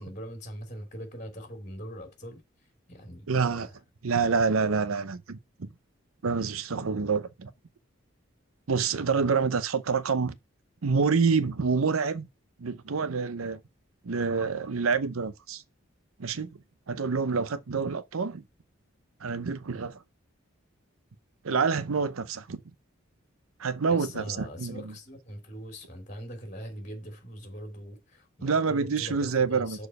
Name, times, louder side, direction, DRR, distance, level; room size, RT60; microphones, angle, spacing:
voice 1, 0.0-2.4 2.9-3.7 23.9-29.9, equal, 35° left, 3.0 m, -41 dB
voice 2, 3.3-3.7 4.0-5.7 6.2-7.5 8.7-10.3 10.8-12.3 12.6-13.6 14.0-15.6 16.2-16.6 16.9-18.4 19.2-20.0 21.4-22.6 23.6-24.9 28.4-29.8, right 5 dB, 85° right, 0.7 m, -27 dB
6.6 x 4.6 x 6.4 m
head